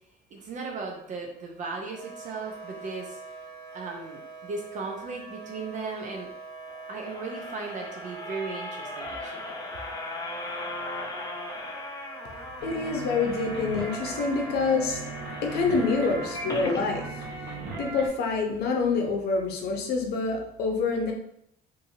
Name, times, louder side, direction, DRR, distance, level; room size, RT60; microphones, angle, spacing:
voice 1, 0.3-3.2 3.7-6.3 6.9-9.5, right 4 dB, 45° right, 1 dB, 0.5 m, -36 dB
Wind instrument woodwind instrument, 1.8-17.1, right 3 dB, 5° right, 1.0 m, -44 dB
sound 1, 6.7-16.8 17.3-17.4 17.7-17.8, left 2 dB, 20° left, 0.4 m, -38 dB
voice 2, 12.6-15.0 15.4-21.1, left 4 dB, 70° left, 2 dB, 0.7 m, -27 dB
sound 2, 12.6-18.1, right 3 dB, 85° right, 1.0 m, -38 dB
2.6 x 2.6 x 2.7 m, 0.73 s
cardioid pair, 110°, 17 cm